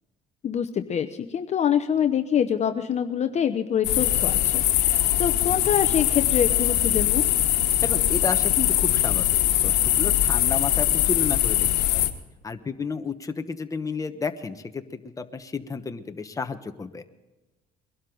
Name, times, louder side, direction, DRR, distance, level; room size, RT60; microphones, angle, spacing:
voice 1, 0.4-7.2, left 8 dB, 40° left, 7 dB, 0.8 m, -25 dB
sound 1, 3.8-12.1, left 13 dB, 80° left, 1.4 m, -22 dB
voice 2, 7.8-12.1 12.4-17.0, left 4 dB, 20° left, 7 dB, 1.1 m, -32 dB
22.0 x 12.5 x 3.9 m, 1.1 s
cardioid pair, 110°, 17 cm